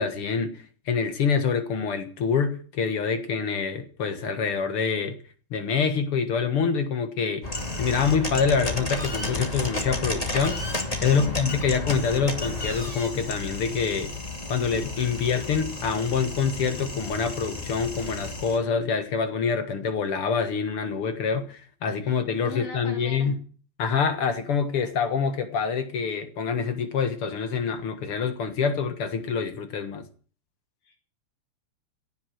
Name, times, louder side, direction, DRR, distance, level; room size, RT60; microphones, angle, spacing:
voice 1, 0.0-5.2 5.5-7.5 7.8-10.7 11.0-14.1 14.5-23.3 23.8-30.1, left 6 dB, 50° left, 2.1 m, -26 dB
sound 1, 7.4-18.6, left 2 dB, 15° left, 2.0 m, -32 dB
voice 2, 11.0-11.4 22.0-22.1 22.4-23.3 30.8-31.0, left 6 dB, 85° left, 4.5 m, -39 dB
17.0 x 8.0 x 9.3 m
omnidirectional pair, 3.5 m